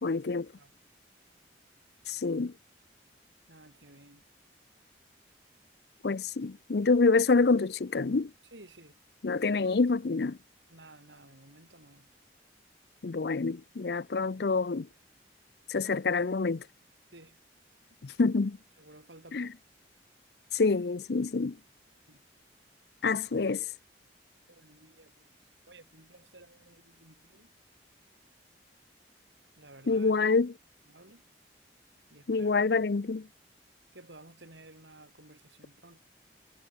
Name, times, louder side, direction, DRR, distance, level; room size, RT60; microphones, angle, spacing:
voice 1, 0.0-0.5 2.1-2.5 6.0-8.3 9.2-10.4 13.0-14.9 15.7-16.6 18.0-18.6 19.3-19.5 20.5-21.6 23.0-23.6 29.9-30.6 32.3-33.3, left 4 dB, 60° left, 0.5 m, -27 dB
voice 2, 3.5-4.2 8.5-9.0 10.7-12.1 17.1-17.4 18.8-19.5 22.1-22.2 24.5-25.3 25.7-27.5 29.6-30.1 30.9-31.2 32.1-32.5 33.9-36.0, right 2 dB, 80° right, 7.1 m, -54 dB
head